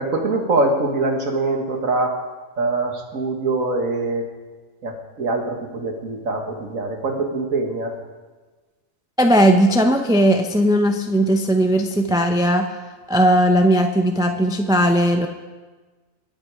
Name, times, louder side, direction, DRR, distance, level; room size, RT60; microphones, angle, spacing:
voice 1, 0.0-2.2 2.6-4.3 4.8-7.9, right 3 dB, 75° right, 3 dB, 2.1 m, -23 dB
voice 2, 9.2-12.7 13.1-15.3, equal, 5° right, 4 dB, 0.5 m, -17 dB
22.0 x 8.8 x 4.9 m, 1.3 s
omnidirectional pair, 1.4 m